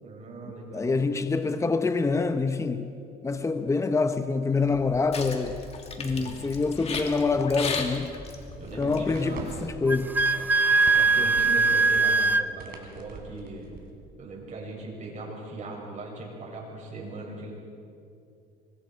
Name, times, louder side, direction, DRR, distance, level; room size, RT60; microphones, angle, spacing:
voice 1, 0.0-0.9 3.5-3.6 6.0-6.4 8.6-9.5 10.3-10.5 10.9-13.7 14.1-17.5, right 3 dB, 45° right, 6.6 m, -39 dB
voice 2, 0.7-2.9 3.2-5.6 6.0-8.1 8.8-10.1, left 4 dB, 15° left, 0.9 m, -26 dB
sound 1, 4.6-9.7, left 4 dB, 40° left, 2.5 m, -37 dB
sound 2, 8.6-13.9, right 4 dB, 65° right, 4.0 m, -45 dB
Wind instrument woodwind instrument, 9.9-12.5, right 3 dB, 10° right, 0.7 m, -21 dB
26.0 x 24.0 x 4.7 m
cardioid pair, 110°, 17 cm